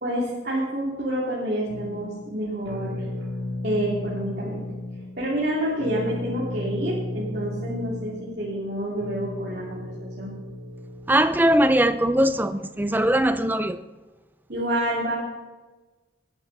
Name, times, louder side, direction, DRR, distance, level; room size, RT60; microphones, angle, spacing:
voice 1, 0.0-3.0 3.6-4.6 5.2-10.3 14.5-15.1, right 1 dB, 60° right, 3.0 m, -28 dB
sound 1, 1.7-11.6, left 1 dB, 75° right, 1.9 m, -35 dB
voice 2, 11.1-13.8, right 1 dB, 10° right, 0.5 m, -20 dB
18.5 x 10.5 x 4.1 m
head